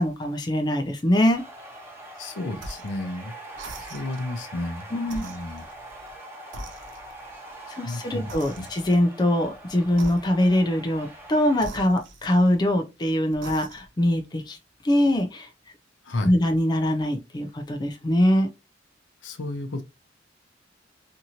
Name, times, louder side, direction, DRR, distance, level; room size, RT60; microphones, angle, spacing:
voice 1, 0.0-1.4 4.9-5.3 7.7-14.6 14.8-15.5 16.2-18.5, left 1 dB, 20° left, 0.4 m, -23 dB
sound 1, 1.3-11.6, right 1 dB, 10° right, 0.7 m, -43 dB
voice 2, 2.2-3.3 3.8-4.9 5.2-5.6 7.8-8.3 8.6-8.7 16.0-16.3 19.2-19.8, left 2 dB, 75° left, 0.6 m, -32 dB
sound 2, 2.6-3.0 3.5-4.3 5.0-6.2 6.5-7.3 8.3-9.0 9.9-10.6 11.6-12.7 13.3-14.0, right 2 dB, 70° right, 0.5 m, -42 dB
2.7 x 2.5 x 2.8 m
head